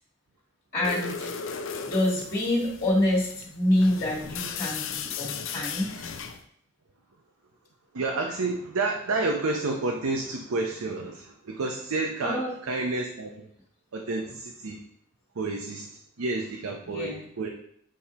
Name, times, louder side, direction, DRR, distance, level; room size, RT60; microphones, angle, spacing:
voice 1, 0.7-1.3 1.8-6.1 12.2-12.5 16.9-17.2, left 1 dB, 35° left, -6 dB, 1.5 m, -26 dB
sound 1, 0.8-6.4, left 6 dB, 60° left, 0.5 m, -36 dB
voice 2, 7.9-13.5 13.9-14.8 15.3-17.5, right 3 dB, 85° right, 2 dB, 0.6 m, -30 dB
8.4 x 4.3 x 2.8 m, 0.69 s
head